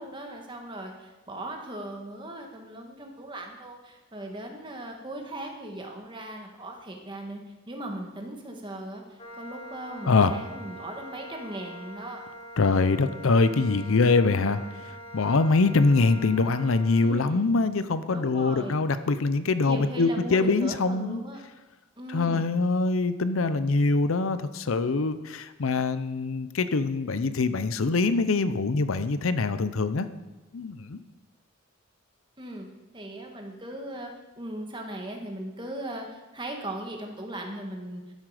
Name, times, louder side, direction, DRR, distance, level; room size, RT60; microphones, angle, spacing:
voice 1, 0.0-12.2 17.0-17.5 18.1-18.8 19.6-21.4 22.0-22.5 32.4-32.7 32.9-34.1 34.4-38.0, right 1 dB, 25° right, 2 dB, 1.5 m, -38 dB
Wind instrument woodwind instrument, 9.2-17.2, equal, 30° left, 1.6 m, -44 dB
voice 2, 12.6-14.6 14.9-21.2 22.1-30.1 30.5-31.0, left 3 dB, 85° left, 11 dB, 0.6 m, -24 dB
12.5 x 7.6 x 4.9 m, 1.1 s
head